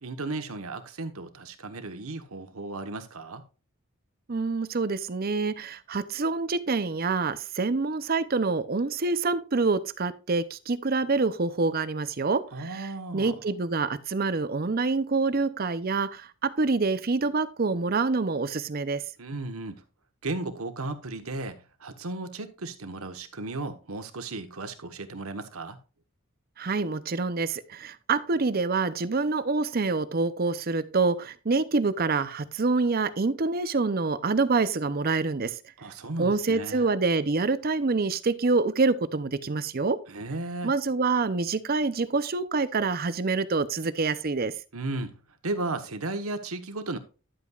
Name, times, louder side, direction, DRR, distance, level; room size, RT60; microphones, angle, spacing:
voice 1, 0.0-3.4 12.5-13.3 19.2-19.8 20.2-25.8 35.8-36.9 40.1-40.7 44.7-45.2 45.4-47.0, right 2 dB, 85° right, 1.3 m, -35 dB
voice 2, 4.3-19.0 26.6-35.6 36.2-40.0 40.6-44.5, right 3 dB, 45° right, 0.6 m, -26 dB
11.5 x 8.3 x 2.4 m
head